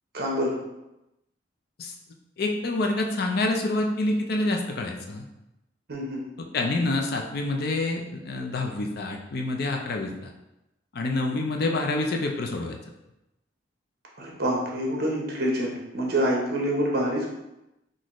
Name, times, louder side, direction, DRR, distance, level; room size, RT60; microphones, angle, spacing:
voice 1, 0.1-0.6 5.9-6.2 14.2-17.3, equal, 50° right, -2 dB, 0.8 m, -26 dB
voice 2, 2.4-5.2 6.5-10.1 10.9-12.8, left 2 dB, 55° left, 2 dB, 0.5 m, -27 dB
4.0 x 2.6 x 3.0 m, 0.92 s
head